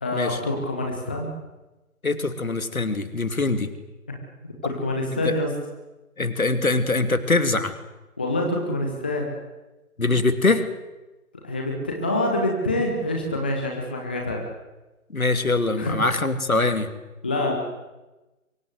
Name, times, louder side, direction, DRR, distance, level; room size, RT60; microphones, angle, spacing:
voice 1, 0.0-1.3 4.6-5.5 8.2-9.3 11.4-14.4 15.8-15.9 17.2-17.5, left 1 dB, 5° left, 0 dB, 0.8 m, -26 dB
voice 2, 2.0-3.7 5.2-5.4 6.2-7.7 10.0-10.6 15.1-16.9, left 3 dB, 70° left, 9 dB, 2.8 m, -23 dB
23.5 x 22.5 x 8.2 m, 1.1 s
figure-of-eight pair, 150°, 43 cm